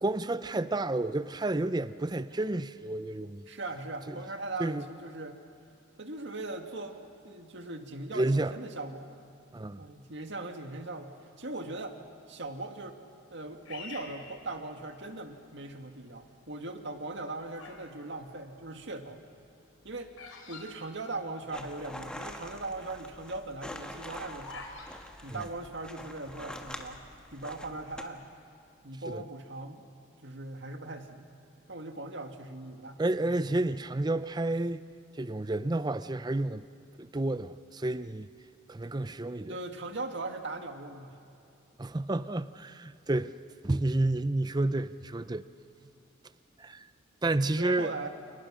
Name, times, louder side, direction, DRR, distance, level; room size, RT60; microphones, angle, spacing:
voice 1, 0.0-3.4 4.1-4.2 4.6-4.8 8.1-8.6 9.5-9.8 29.1-29.2 33.0-34.8 35.2-36.7 37.0-38.3 38.7-39.6 41.8-43.3 43.6-45.4 46.6-46.9 47.2-47.9, right 2 dB, 20° right, 0.5 m, -30 dB
voice 2, 3.5-5.4 6.0-9.2 9.8-11.1 11.4-12.0 12.3-13.0 13.3-19.2 19.8-20.1 20.5-24.7 25.2-27.0 27.3-28.2 28.8-29.8 30.2-31.3 31.7-33.3 39.5-41.2 47.6-48.1, right 2 dB, 60° right, 2.0 m, -39 dB
Bird vocalization bird call bird song, 13.6-15.2 15.8-16.2 17.0-17.9 18.2-21.7 22.0-22.1 22.2-22.6 23.0-24.9, left 4 dB, 90° left, 4.0 m, -47 dB
sound 1, 21.5-28.0, left 1 dB, 5° left, 1.6 m, -45 dB
29.5 x 29.0 x 6.3 m
head